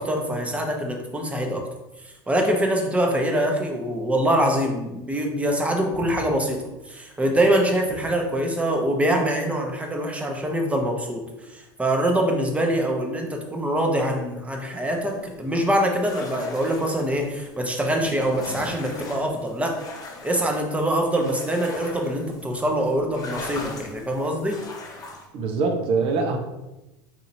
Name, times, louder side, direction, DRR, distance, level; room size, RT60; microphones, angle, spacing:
voice 1, 0.0-1.6 2.3-11.2 11.5-19.8 20.2-24.6, right 1 dB, 10° right, 2 dB, 0.8 m, -24 dB
sound 1, 14.9-25.3, left 3 dB, 30° left, 0.8 m, -40 dB
voice 2, 25.3-26.4, right 4 dB, 50° right, 5 dB, 0.7 m, -23 dB
4.3 x 2.7 x 2.6 m, 0.99 s
hypercardioid pair, 85°, 12 cm